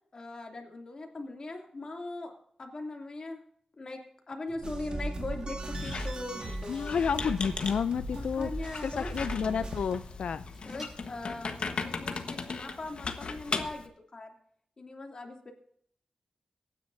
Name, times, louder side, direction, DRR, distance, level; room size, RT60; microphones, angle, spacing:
voice 1, 0.1-2.3 2.6-3.4 3.8-4.0 4.3-7.0 8.1-9.1 10.6-14.3 14.8-15.5, left 2 dB, 40° left, 1 dB, 2.7 m, -40 dB
Chewing mastication, 4.5-12.6, right 1 dB, 15° right, 5.8 m, -55 dB
sound 1, 4.6-10.0, right 2 dB, 45° right, 2.0 m, -38 dB
Squeak, 5.7-13.9, left 4 dB, 60° left, 1.3 m, -38 dB
voice 2, 6.7-8.5 8.8-10.4, left 6 dB, 90° left, 12 dB, 0.4 m, -30 dB
23.5 x 10.0 x 2.7 m, 0.65 s
wide cardioid pair, 135°, 2 cm